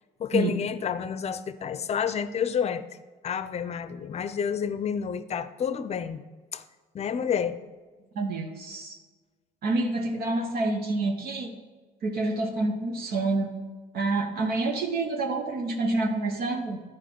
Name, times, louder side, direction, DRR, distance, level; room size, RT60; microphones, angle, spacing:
voice 1, 0.2-2.8 3.2-6.2 6.5-6.6 6.9-7.6, left 7 dB, 40° left, 13 dB, 0.6 m, -29 dB
voice 2, 8.1-9.0 9.6-11.5 12.0-13.5 13.9-16.8, right 2 dB, 65° right, 2 dB, 1.2 m, -28 dB
11.0 x 4.9 x 6.2 m, 1.4 s
cardioid pair, 110°, 17 cm